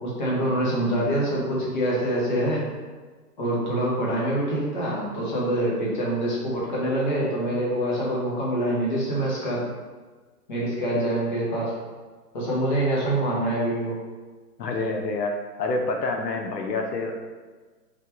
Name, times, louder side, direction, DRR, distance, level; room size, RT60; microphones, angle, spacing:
voice 1, 0.0-2.6 3.4-9.6 10.5-11.7 12.3-13.9, right 1 dB, 30° left, -5 dB, 0.8 m, -25 dB
voice 2, 14.6-17.2, left 3 dB, 85° left, 3 dB, 0.7 m, -27 dB
3.4 x 2.4 x 4.4 m, 1.4 s
hypercardioid pair, 170°, 48 cm